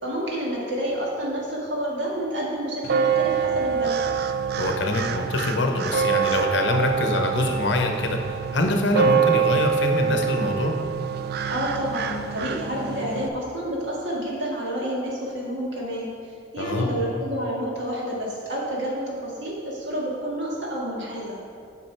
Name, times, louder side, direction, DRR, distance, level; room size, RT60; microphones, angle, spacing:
voice 1, 0.0-4.0 11.5-16.2 16.5-21.3, equal, 70° right, -4 dB, 1.8 m, -29 dB
sound 1, 2.8-13.3, right 7 dB, 55° right, 0.4 m, -25 dB
voice 2, 4.6-10.8 16.6-17.0, left 2 dB, 65° left, 4 dB, 0.8 m, -24 dB
8.5 x 5.2 x 4.5 m, 2.4 s
head